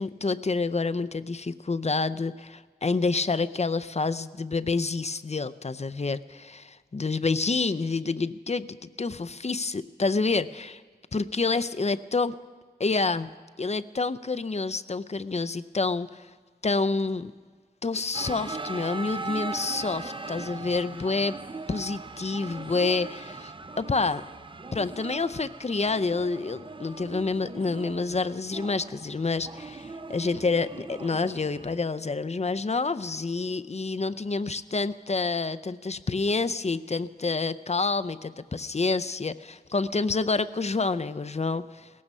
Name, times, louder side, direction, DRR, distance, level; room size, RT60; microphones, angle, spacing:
voice 1, 0.0-10.8 11.1-12.3 12.8-13.3 13.6-16.3 16.6-17.3 17.8-21.4 21.7-24.2 24.7-41.9, left 3 dB, 40° left, 12 dB, 0.5 m, -28 dB
sound 1, 18.1-31.8, right 3 dB, 30° right, 0.5 m, -39 dB
17.5 x 15.0 x 5.4 m, 1.5 s
wide cardioid pair, 70°, 17 cm